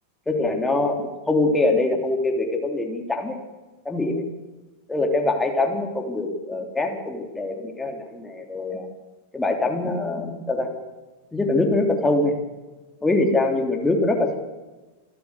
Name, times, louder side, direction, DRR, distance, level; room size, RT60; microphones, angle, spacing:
voice 1, 0.3-3.4 3.8-4.2 4.9-8.9 9.3-10.7 11.3-12.3 13.0-14.4, left 2 dB, 10° left, 2 dB, 3.2 m, -23 dB
27.5 x 12.5 x 8.2 m, 1.2 s
figure-of-eight pair, 90°, 0 cm